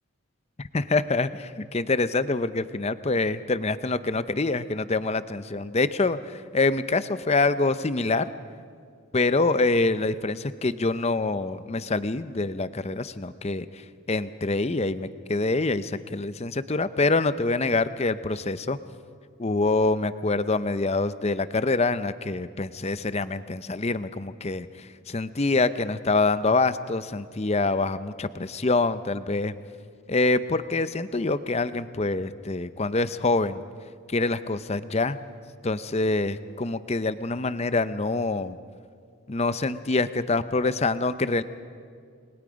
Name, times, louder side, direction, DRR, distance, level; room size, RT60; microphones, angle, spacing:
voice 1, 0.6-8.3 9.1-13.7 14.1-18.8 19.4-29.5 30.1-33.6 34.1-35.3 35.6-38.6 39.3-41.4, left 3 dB, 30° left, 13 dB, 0.6 m, -25 dB
28.5 x 21.0 x 5.1 m, 2.2 s
head